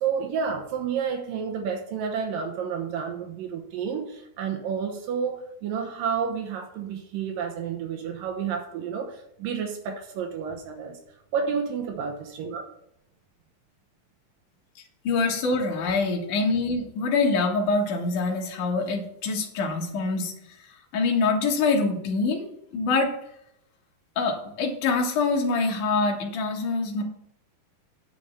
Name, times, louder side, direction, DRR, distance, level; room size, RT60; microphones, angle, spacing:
voice 1, 0.0-11.0 11.3-12.6, right 6 dB, 80° right, 3 dB, 2.7 m, -30 dB
voice 2, 15.0-20.3 20.9-22.5 22.7-23.1 24.2-27.0, left 3 dB, 65° left, 1 dB, 3.0 m, -25 dB
9.9 x 5.1 x 7.1 m, 0.78 s
omnidirectional pair, 4.0 m